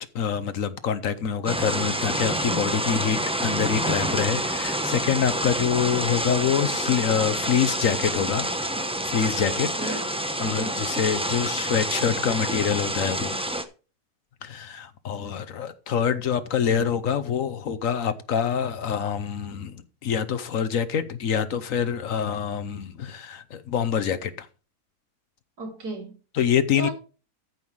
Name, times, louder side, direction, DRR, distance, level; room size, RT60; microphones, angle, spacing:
voice 1, 0.0-8.5 9.0-10.0 10.4-13.4 14.4-24.5 26.3-26.9, left 8 dB, 60° left, 1.2 m, -26 dB
sound 1, 1.5-13.6, right 1 dB, 5° right, 0.6 m, -28 dB
voice 2, 9.6-10.0 10.4-10.8 25.6-26.2 26.8-26.9, right 2 dB, 80° right, 4.0 m, -34 dB
13.5 x 5.6 x 4.7 m
omnidirectional pair, 1.6 m